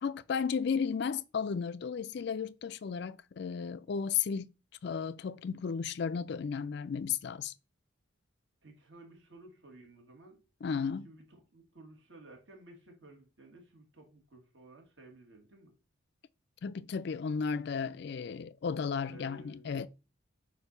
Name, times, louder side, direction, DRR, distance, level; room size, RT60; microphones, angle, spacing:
voice 1, 0.0-4.5 4.8-7.5 10.6-11.1 16.6-19.9, left 6 dB, 55° left, 0.3 m, -34 dB
voice 2, 8.6-10.4 11.0-15.7 19.1-19.9, right 2 dB, 60° right, 2.0 m, -55 dB
7.9 x 2.7 x 5.4 m
head